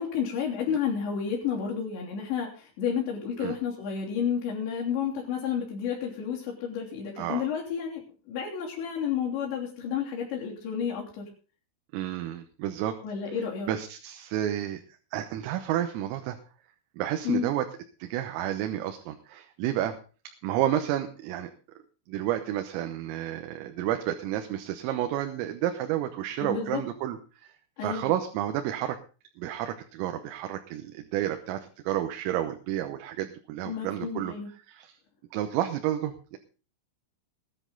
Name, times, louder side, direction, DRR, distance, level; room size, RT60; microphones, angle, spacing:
voice 1, 0.0-8.0 8.3-11.2 13.0-13.7 17.3-17.5 26.4-26.8 27.8-28.1 33.7-34.5, left 7 dB, 60° left, -5 dB, 5.3 m, -31 dB
voice 2, 7.2-7.5 11.9-13.0 13.7-14.8 15.1-16.4 17.0-17.7 18.0-19.9 20.4-21.5 22.1-27.5 27.8-29.0 29.4-34.3 34.7-35.0 35.3-36.4, right 12 dB, 90° right, 6 dB, 3.7 m, -30 dB
19.5 x 10.5 x 4.0 m, 0.37 s
omnidirectional pair, 5.8 m